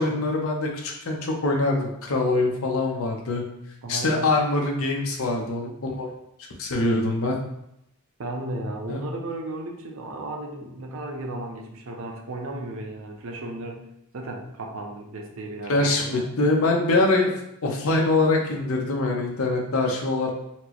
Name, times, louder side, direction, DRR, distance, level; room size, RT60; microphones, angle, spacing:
voice 1, 0.0-3.4 3.9-6.1 6.6-7.3 8.9-9.0 15.7-17.3 17.6-20.3, left 2 dB, 65° left, 1 dB, 0.6 m, -23 dB
voice 2, 3.8-4.3 8.2-13.9 14.1-16.2, right 2 dB, 60° right, 2 dB, 0.5 m, -34 dB
4.3 x 2.0 x 2.8 m, 0.80 s
head